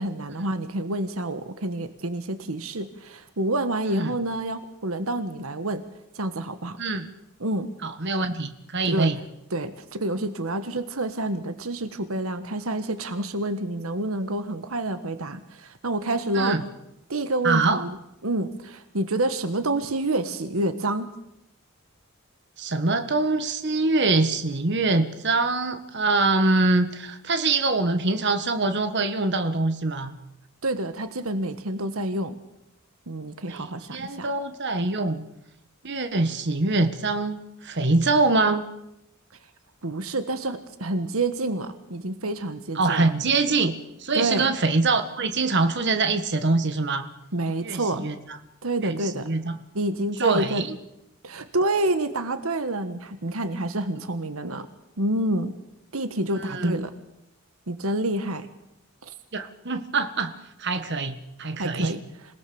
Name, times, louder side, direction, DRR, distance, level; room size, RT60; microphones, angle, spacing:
voice 1, 0.0-5.8 6.1-6.8 7.4-7.7 8.8-9.1 9.5-16.6 17.1-18.0 18.2-21.1 30.6-32.4 33.1-34.3 39.8-43.0 44.1-44.5 47.3-48.1 48.6-49.3 49.7-50.6 51.2-54.7 55.0-55.5 55.9-56.9 57.7-58.5 59.0-59.1 61.6-62.0, right 1 dB, 80° right, 11 dB, 1.4 m, -28 dB
voice 2, 7.8-9.2 16.3-16.6 17.4-17.8 22.6-30.1 33.5-35.2 35.8-38.6 42.7-47.1 47.6-48.1 48.8-49.6 50.2-50.8 56.4-56.8 59.3-61.9, right 3 dB, 55° right, 9 dB, 1.6 m, -24 dB
27.0 x 18.0 x 7.1 m, 0.84 s
head